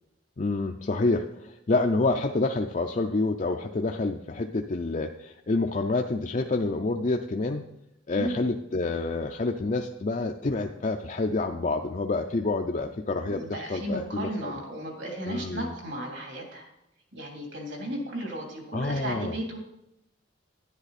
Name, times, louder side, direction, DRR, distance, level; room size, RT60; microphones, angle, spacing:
voice 1, 0.4-7.7 8.1-14.6 15.3-15.7 18.7-19.4, left 3 dB, 40° left, 4 dB, 0.5 m, -28 dB
voice 2, 13.2-16.7 17.1-19.6, right 1 dB, 65° right, 0 dB, 3.1 m, -35 dB
10.5 x 10.5 x 4.2 m, 0.83 s
head